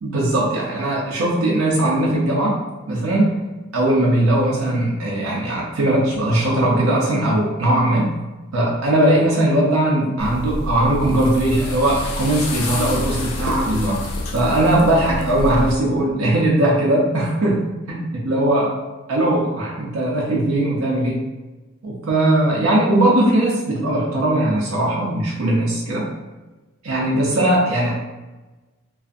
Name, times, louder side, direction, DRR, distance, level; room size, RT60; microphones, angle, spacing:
voice 1, 0.0-2.6 2.9-3.3 3.7-8.1 8.5-14.0 14.3-18.7 19.1-21.2 21.8-26.1 26.8-28.1, right 1 dB, 75° right, -4 dB, 0.5 m, -19 dB
sound 1, 10.2-15.7, left 2 dB, 90° left, 0.4 m, -27 dB
2.5 x 2.3 x 2.4 m, 1.2 s
head